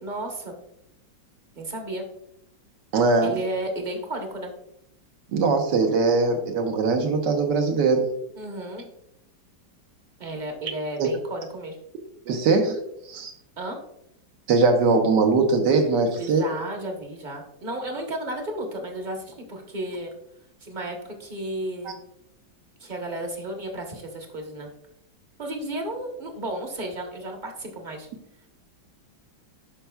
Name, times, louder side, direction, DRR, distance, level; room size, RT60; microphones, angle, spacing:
voice 1, 0.0-0.6 1.6-2.1 3.2-4.5 8.3-8.9 10.2-11.8 13.6-13.8 16.2-20.1 20.6-22.0 22.8-24.7 25.4-28.1, right 1 dB, 30° right, 2 dB, 1.0 m, -33 dB
voice 2, 2.9-3.4 5.3-8.1 11.0-11.1 12.2-12.8 13.1-13.3 14.5-16.4 21.8-22.0, right 4 dB, 65° right, 5 dB, 1.6 m, -21 dB
11.5 x 5.3 x 2.3 m, 0.76 s
omnidirectional pair, 2.1 m